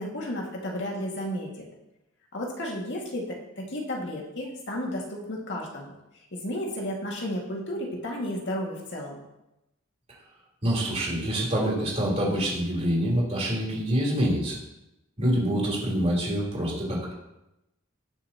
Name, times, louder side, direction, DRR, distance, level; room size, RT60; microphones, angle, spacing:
voice 1, 0.0-1.6 2.3-5.9 6.3-9.2, equal, 60° left, -1 dB, 2.1 m, -33 dB
voice 2, 10.6-14.6 15.2-17.1, equal, 30° right, -5 dB, 3.7 m, -26 dB
19.5 x 6.9 x 3.0 m, 0.91 s
head